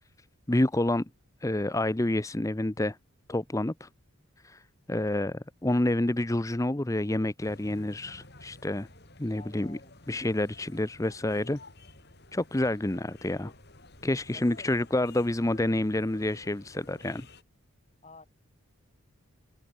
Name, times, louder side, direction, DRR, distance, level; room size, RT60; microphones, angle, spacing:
voice 1, 0.5-1.1 1.4-3.0 3.3-3.9 4.4-4.6 4.9-8.9 9.2-9.8 10.1-11.6 12.3-13.5 14.0-17.3, left 1 dB, 15° left, 0.6 m, -28 dB
sound 1, 7.4-17.4, left 2 dB, 50° left, 4.3 m, -52 dB
voice 2, 9.4-9.9 14.3-14.8 18.0-18.3, left 2 dB, 30° left, 6.0 m, -50 dB
open air
head